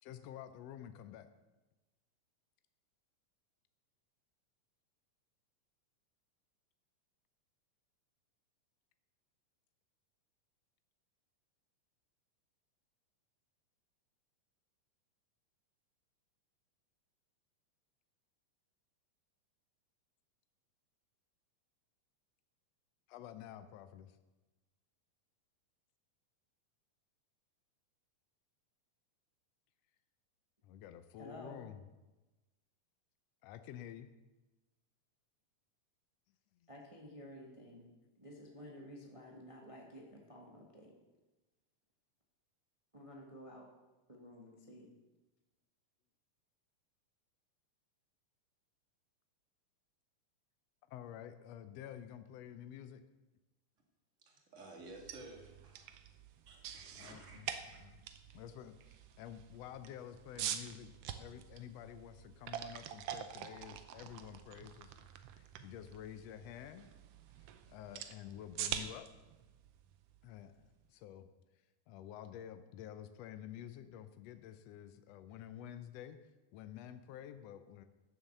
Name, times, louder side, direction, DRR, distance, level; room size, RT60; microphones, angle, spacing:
voice 1, 0.0-1.3 23.1-24.2 30.6-31.8 33.4-34.1 50.9-53.0 57.0-57.5 57.8-58.1 58.3-60.9 61.2-64.9 65.4-66.9 67.4-69.1 70.2-71.3 71.9-76.2 76.5-77.9, left 10 dB, 90° left, 1.4 m, -50 dB
voice 2, 31.2-31.6 36.7-41.0 42.9-43.7 44.1-44.9, equal, 60° right, 0.3 m, -52 dB
voice 3, 54.2-55.9 56.5-57.9, right 2 dB, 25° right, 1.9 m, -54 dB
sound 1, 54.9-70.8, right 10 dB, 90° right, 1.3 m, -46 dB
14.5 x 7.2 x 6.6 m
omnidirectional pair, 3.7 m